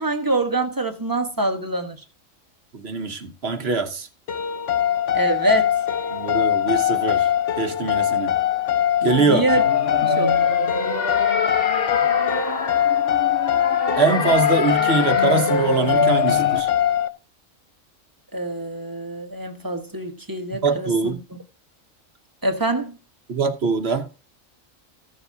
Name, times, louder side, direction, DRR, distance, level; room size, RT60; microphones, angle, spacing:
voice 1, 0.0-2.0 5.1-5.7 9.2-9.6 10.0-10.3 18.3-21.2 22.4-23.0, right 2 dB, 15° right, 1.2 m, -25 dB
voice 2, 2.7-4.1 6.1-7.3 7.6-8.3 9.0-9.5 14.0-16.7 20.6-21.2 23.3-24.1, right 4 dB, 55° right, 1.2 m, -22 dB
sound 1, 4.3-17.1, left 11 dB, 65° left, 1.2 m, -22 dB
sound 2, 9.5-16.6, left 2 dB, 45° left, 1.3 m, -25 dB
15.0 x 7.1 x 2.8 m
omnidirectional pair, 1.4 m